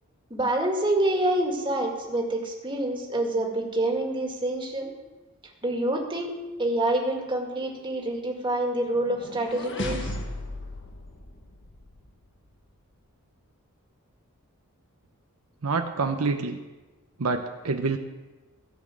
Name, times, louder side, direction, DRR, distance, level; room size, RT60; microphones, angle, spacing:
voice 1, 0.3-4.9 5.6-6.3 6.6-10.2, right 1 dB, 20° right, 0 dB, 2.0 m, -27 dB
sound 1, 8.9-12.1, left 1 dB, 55° left, 1.4 m, -36 dB
voice 2, 15.6-16.6 17.2-18.0, right 4 dB, 75° right, 5 dB, 0.8 m, -27 dB
15.5 x 6.2 x 7.6 m, 1.2 s
head